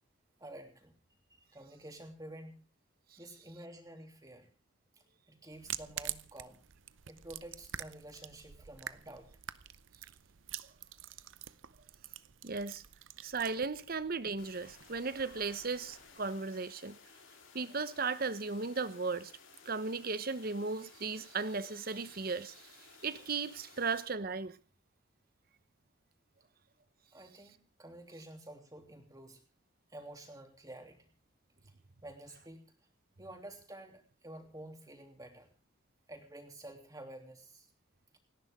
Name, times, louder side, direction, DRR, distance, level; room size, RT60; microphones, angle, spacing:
voice 1, 0.4-0.9 1.3-2.7 3.2-4.5 5.3-6.6 7.1-9.3 27.1-29.4 29.9-31.1 31.6-31.7 32.0-32.7 33.2-35.5 36.1-37.7, right 1 dB, 20° right, 3.0 m, -50 dB
sound 1, 5.5-16.2, right 11 dB, 70° right, 0.7 m, -47 dB
voice 2, 12.4-12.8 13.2-17.0 17.5-19.3 19.6-24.6, right 4 dB, 45° right, 0.9 m, -36 dB
sound 2, 14.4-24.1, left 5 dB, 75° left, 4.0 m, -58 dB
29.0 x 10.5 x 3.7 m
head